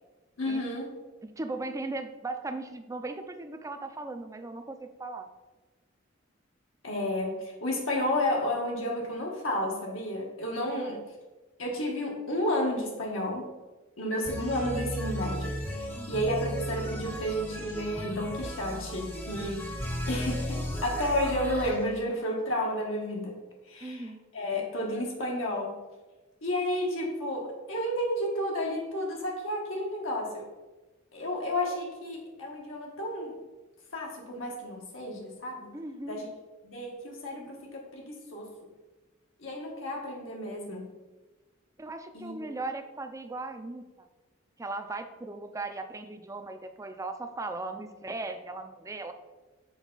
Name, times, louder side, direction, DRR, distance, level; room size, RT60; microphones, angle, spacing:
voice 1, 0.4-0.9 6.8-11.0 11.6-13.5 14.0-19.7 20.1-23.3 23.7-25.8 26.4-30.5 31.1-33.4 33.9-35.7 36.1-36.3 36.6-38.5 39.4-40.9 42.1-42.5, left 1 dB, 80° left, -1 dB, 1.4 m, -32 dB
voice 2, 1.2-5.3 10.7-11.0 15.9-16.1 23.8-24.2 35.7-36.2 41.8-44.1 44.6-49.1, right 2 dB, 15° right, 7 dB, 0.4 m, -38 dB
sound 1, 14.3-21.8, equal, 10° left, 0.8 m, -35 dB
6.3 x 4.4 x 3.9 m, 1.2 s
head